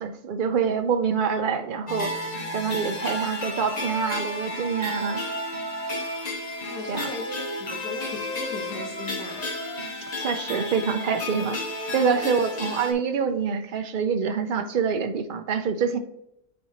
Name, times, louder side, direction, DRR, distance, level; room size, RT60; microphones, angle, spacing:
voice 1, 0.0-5.2 6.9-7.1 10.2-11.6 11.9-16.0, right 6 dB, 80° right, 8 dB, 0.4 m, -26 dB
sound 1, 1.9-12.9, left 1 dB, 30° left, 0.9 m, -32 dB
voice 2, 6.7-9.5, left 2 dB, 75° left, 2 dB, 1.8 m, -37 dB
8.4 x 4.2 x 2.9 m, 0.77 s
omnidirectional pair, 1.6 m